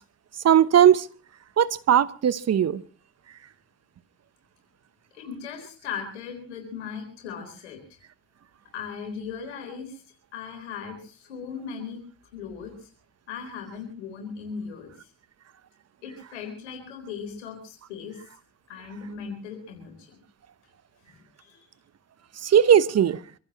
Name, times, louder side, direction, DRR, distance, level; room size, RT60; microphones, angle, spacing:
voice 1, 0.4-1.1 1.6-2.8 22.4-23.2, right 9 dB, 50° right, 1.0 m, -18 dB
voice 2, 5.1-7.8 8.7-10.0 10.3-12.0 12.3-12.7 13.3-15.1 16.0-18.2 18.7-20.2 21.1-21.6, left 6 dB, 90° left, 4.2 m, -38 dB
26.0 x 15.5 x 3.0 m
hypercardioid pair, 45°, 34 cm